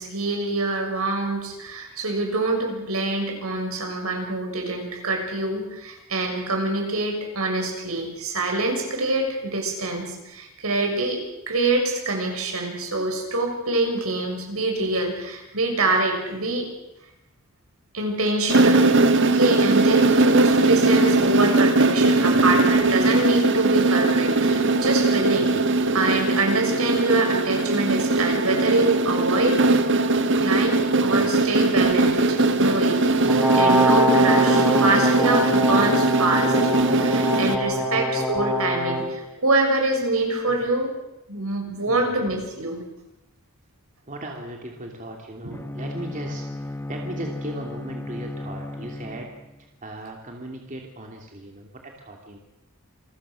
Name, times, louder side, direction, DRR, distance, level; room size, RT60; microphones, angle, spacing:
voice 1, 0.0-11.2 11.5-16.7 17.9-18.8 19.2-25.5 25.9-29.6 30.4-33.0 33.3-36.5 37.0-40.9 41.3-42.9 45.4-45.6, right 2 dB, 80° right, 2 dB, 6.6 m, -25 dB
sound 1, 18.5-37.6, right 2 dB, 55° right, 1.6 m, -20 dB
voice 2, 22.0-22.5 25.2-25.5 31.0-31.3 31.5-31.8 37.6-38.0 40.5-40.6 41.9-42.1 44.1-49.3 49.8-52.4, right 1 dB, 35° right, 1 dB, 2.8 m, -38 dB
Brass instrument, 33.3-39.1, equal, 5° right, 3.9 m, -23 dB
Bowed string instrument, 45.5-49.7, left 1 dB, 10° left, 1.5 m, -35 dB
28.0 x 22.0 x 6.4 m, 0.96 s
head